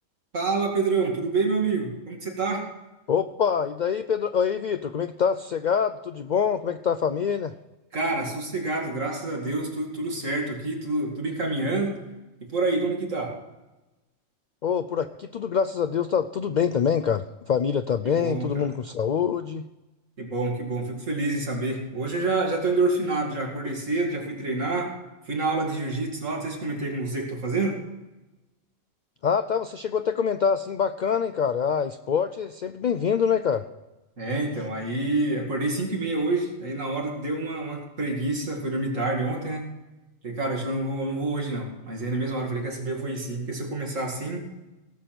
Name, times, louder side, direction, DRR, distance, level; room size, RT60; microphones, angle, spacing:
voice 1, 0.3-2.6 7.9-12.0 12.5-13.3 18.0-18.7 20.2-24.9 25.3-27.8 34.2-39.7 40.2-44.5, right 3 dB, 75° right, 0 dB, 2.7 m, -27 dB
voice 2, 3.1-7.5 14.6-19.6 29.2-33.6, left 7 dB, 75° left, 11 dB, 0.4 m, -25 dB
17.5 x 6.8 x 5.9 m, 1.1 s
omnidirectional pair, 1.3 m